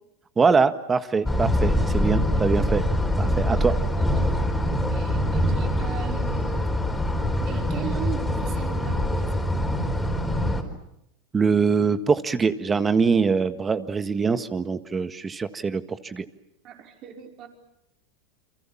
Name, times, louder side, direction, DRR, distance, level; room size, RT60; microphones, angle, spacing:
voice 1, 0.4-2.9 3.2-3.7 11.3-16.2, right 5 dB, 20° right, 11 dB, 1.6 m, -23 dB
sound 1, 1.3-10.6, left 1 dB, 5° left, 4.5 m, -24 dB
voice 2, 3.6-4.5 4.9-6.7 7.5-9.5 16.6-17.5, right 9 dB, 45° right, 4 dB, 5.1 m, -39 dB
29.5 x 24.5 x 7.4 m, 0.80 s
hypercardioid pair, 105°, 0 cm